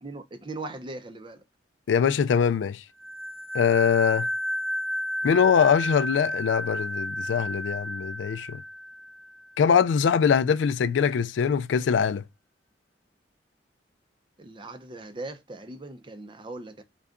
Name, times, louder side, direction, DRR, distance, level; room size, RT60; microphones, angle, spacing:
voice 1, 0.0-1.4 14.4-16.8, right 2 dB, 25° right, 0.5 m, -39 dB
voice 2, 1.9-2.8 3.5-4.3 5.2-8.6 9.6-12.2, left 7 dB, 80° left, 0.3 m, -22 dB
sound 1, 3.0-9.5, equal, 15° left, 0.9 m, -32 dB
3.8 x 2.3 x 3.6 m
head